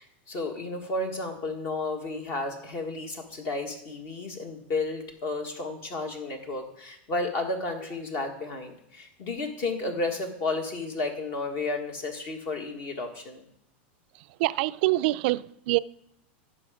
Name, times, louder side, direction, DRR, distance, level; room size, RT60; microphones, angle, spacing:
voice 1, 0.0-13.4, left 2 dB, 45° left, 1.5 m, -32 dB
voice 2, 14.4-15.8, right 19 dB, 60° right, 0.4 m, -25 dB
15.5 x 5.7 x 5.0 m
supercardioid pair, 135°, 6 cm